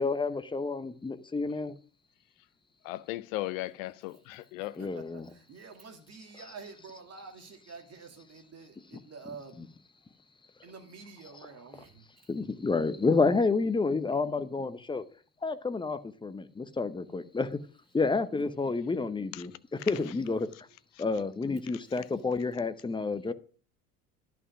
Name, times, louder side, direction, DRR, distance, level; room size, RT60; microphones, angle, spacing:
voice 1, 0.0-1.7 4.8-5.3 6.4-6.5 12.3-15.0 15.4-17.5 17.9-19.5 19.9-20.5 21.0-23.3, left 4 dB, 10° left, 0.8 m, -29 dB
voice 2, 2.8-4.8 19.3-19.4, left 17 dB, 60° left, 0.7 m, -36 dB
voice 3, 4.6-9.7 10.6-12.3 19.8-20.8 21.5-21.6, right 5 dB, 35° right, 2.4 m, -49 dB
11.0 x 5.9 x 5.9 m
figure-of-eight pair, 65°, 45 cm